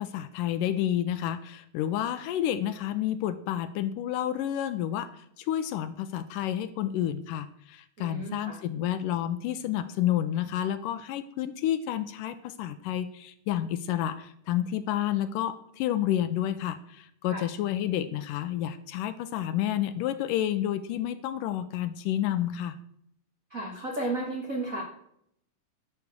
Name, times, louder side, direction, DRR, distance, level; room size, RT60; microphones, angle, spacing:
voice 1, 0.0-5.1 5.4-22.8, left 11 dB, 80° left, 12 dB, 2.1 m, -30 dB
voice 2, 8.0-8.6 17.3-17.4 23.5-24.8, right 2 dB, 55° right, 0 dB, 0.9 m, -33 dB
12.0 x 6.7 x 6.3 m, 0.72 s
omnidirectional pair, 4.1 m